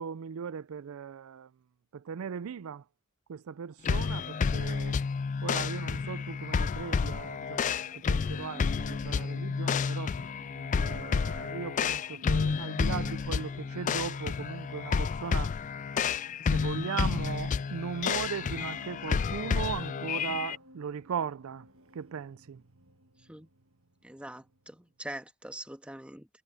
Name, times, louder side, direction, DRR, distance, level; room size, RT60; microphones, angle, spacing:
voice 1, 0.0-1.5 1.9-2.8 3.3-5.0 5.4-10.2 10.7-15.5 16.5-21.7 21.9-22.6, right 7 dB, 85° right, 0.4 m, -38 dB
sound 1, 3.8-20.6, left 5 dB, 35° left, 0.3 m, -30 dB
sound 2, 6.6-25.1, equal, 70° right, 1.8 m, -57 dB
voice 2, 24.0-26.3, right 1 dB, 5° right, 1.7 m, -43 dB
head